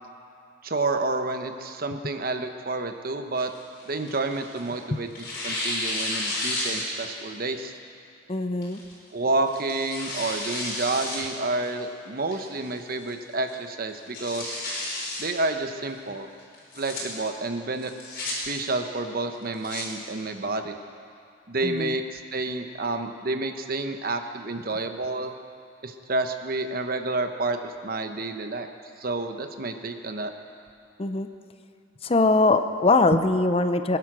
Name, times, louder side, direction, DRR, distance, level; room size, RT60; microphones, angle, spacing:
voice 1, 0.6-3.5 3.9-5.1 5.4-7.7 9.1-14.6 15.2-16.3 16.8-17.9 18.4-20.7 21.5-25.3 25.8-28.7 29.0-30.3, right 2 dB, 50° right, 7 dB, 1.0 m, -29 dB
Tearing, 3.3-4.7 5.1-7.2 7.6-7.7 8.6-8.9 9.5-11.2 11.6-11.7 12.3-12.7 13.1-13.2 13.5-13.6 13.9-15.2 16.5-17.0 17.8-18.3 19.3-19.8, left 2 dB, 50° left, 4.7 m, -32 dB
voice 2, 8.3-8.8 21.6-21.9 31.0-31.3 32.0-34.0, left 3 dB, 30° left, 9 dB, 0.6 m, -22 dB
21.5 x 11.0 x 6.2 m, 2.5 s
head